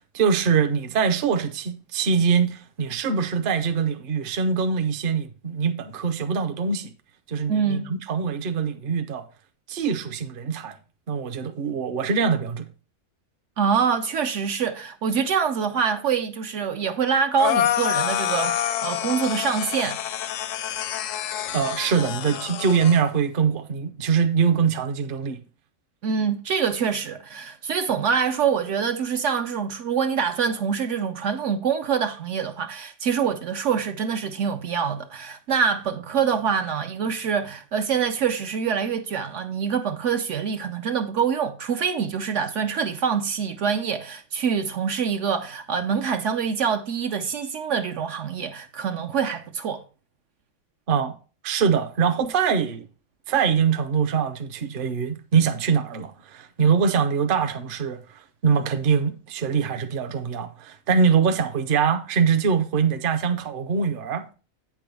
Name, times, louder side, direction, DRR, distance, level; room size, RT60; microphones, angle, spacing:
voice 1, 0.1-6.9 7.3-9.2 9.7-10.8 11.1-12.7 21.5-25.4 50.9-51.2 51.4-52.9 53.3-58.0 58.4-64.2, right 6 dB, 50° right, 0.8 m, -23 dB
voice 2, 7.5-7.9 13.6-20.0 26.0-49.8, right 6 dB, 70° right, 0.9 m, -25 dB
sound 1, 17.4-23.0, left 11 dB, 75° left, 0.9 m, -27 dB
8.5 x 6.1 x 3.3 m
omnidirectional pair, 1.4 m